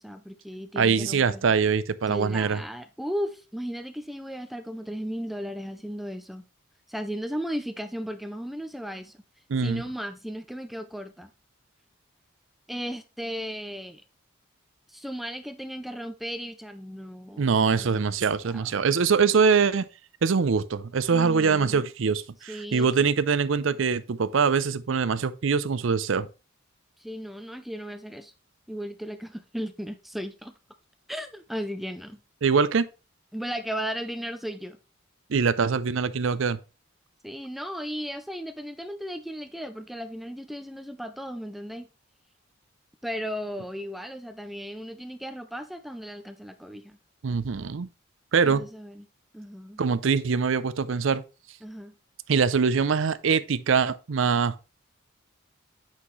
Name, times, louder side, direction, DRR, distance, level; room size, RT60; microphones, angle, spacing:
voice 1, 0.0-1.4 2.1-6.4 6.9-9.2 9.6-11.3 12.7-14.0 14.9-18.7 21.1-21.8 22.5-22.9 27.0-28.3 28.7-30.5 31.1-32.2 33.3-34.8 37.2-41.9 43.0-47.0 48.4-49.1 49.3-49.8 51.6-51.9, equal, ahead, 0.4 m, -36 dB
voice 2, 0.8-2.6 9.5-9.8 17.4-19.8 20.2-26.3 32.4-32.9 35.3-36.6 47.2-47.9 48.3-48.6 49.8-51.2 52.3-54.5, right 5 dB, 65° right, 0.5 m, -23 dB
8.4 x 5.7 x 3.1 m
head